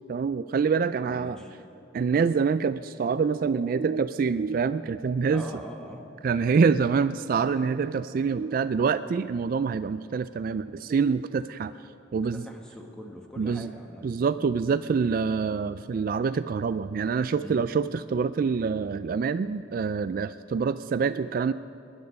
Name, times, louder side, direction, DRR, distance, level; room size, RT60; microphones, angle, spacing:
voice 1, 0.1-1.4 1.9-5.4 6.2-11.7 12.1-12.4 13.4-13.7 14.0-21.5, right 5 dB, 50° right, 13 dB, 0.3 m, -26 dB
voice 2, 1.1-1.5 5.3-6.1 12.1-14.0 17.4-17.6, equal, 5° left, 0 dB, 1.6 m, -42 dB
20.5 x 10.5 x 5.3 m, 2.9 s
head